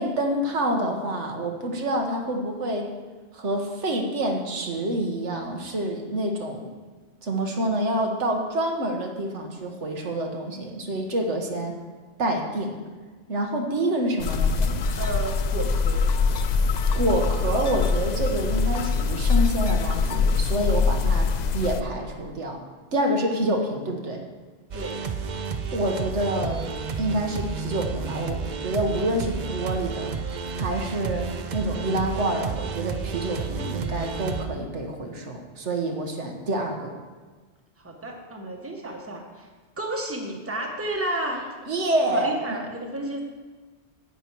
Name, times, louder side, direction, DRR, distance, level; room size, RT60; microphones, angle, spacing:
voice 1, 0.0-2.9 3.3-6.7 7.2-11.8 12.2-12.8 13.3-14.8 16.9-22.6 22.9-24.2 25.7-26.6 27.0-30.2 30.5-36.9 41.7-42.3, right 1 dB, 85° right, 2 dB, 1.6 m, -27 dB
sound 1, 14.2-21.8, left 4 dB, 55° left, 0.5 m, -23 dB
voice 2, 15.0-16.0 24.7-25.0 37.8-39.5 39.8-41.5 42.1-43.2, right 1 dB, 10° right, 1 dB, 1.2 m, -32 dB
sound 2, 24.7-34.5, right 5 dB, 50° right, 0.7 m, -31 dB
10.0 x 8.6 x 4.6 m, 1.4 s
omnidirectional pair, 1.2 m